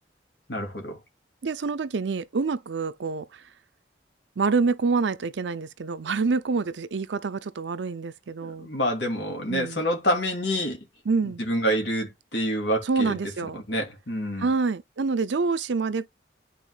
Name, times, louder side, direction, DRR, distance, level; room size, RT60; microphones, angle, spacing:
voice 1, 0.5-1.0 8.4-10.8 11.2-13.2 13.5-14.5, equal, 70° left, 2.6 m, -27 dB
voice 2, 1.4-3.4 4.4-8.7 9.5-9.8 11.1-11.4 12.9-13.6 14.4-16.1, right 4 dB, 80° right, 0.5 m, -27 dB
11.0 x 4.0 x 2.4 m
head